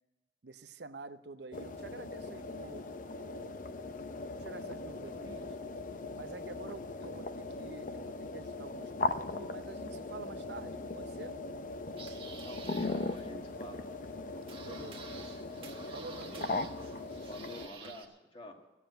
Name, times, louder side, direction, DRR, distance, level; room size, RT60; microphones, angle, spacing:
voice 1, 0.4-3.6 4.4-5.5 6.1-11.4 14.6-15.3 15.9-16.6, right 3 dB, 65° right, 11 dB, 0.7 m, -48 dB
sound 1, 1.5-17.7, left 3 dB, 45° left, 0.6 m, -39 dB
sound 2, 11.6-18.0, right 5 dB, 30° right, 1.3 m, -51 dB
voice 2, 12.4-13.8 16.3-16.4 17.3-18.6, equal, 30° left, 3 dB, 1.5 m, -47 dB
16.5 x 7.3 x 9.1 m, 1.2 s
head